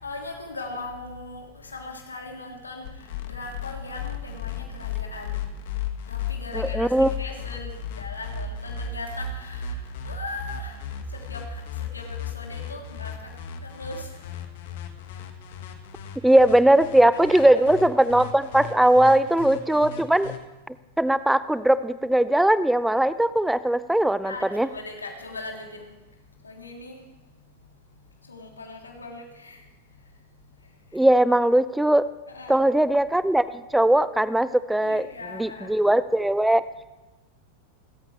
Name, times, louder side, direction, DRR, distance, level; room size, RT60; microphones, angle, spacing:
voice 1, 0.0-2.8 3.2-5.4 6.1-9.7 10.0-10.7 11.1-11.6 11.9-13.1 13.6-14.1 17.3-17.6 19.0-19.2 24.2-25.9 26.4-26.9 28.3-29.6 32.3-32.7 34.8-35.7, left 3 dB, 75° left, 1 dB, 3.2 m, -39 dB
sound 1, 2.8-20.4, left 7 dB, 55° left, 1.8 m, -35 dB
voice 2, 6.5-7.1 16.2-20.3 20.7-24.7 30.9-32.1 32.5-36.6, right 1 dB, 5° right, 16 dB, 0.5 m, -20 dB
28.0 x 14.0 x 3.3 m, 1.1 s
figure-of-eight pair, 90°, 0 cm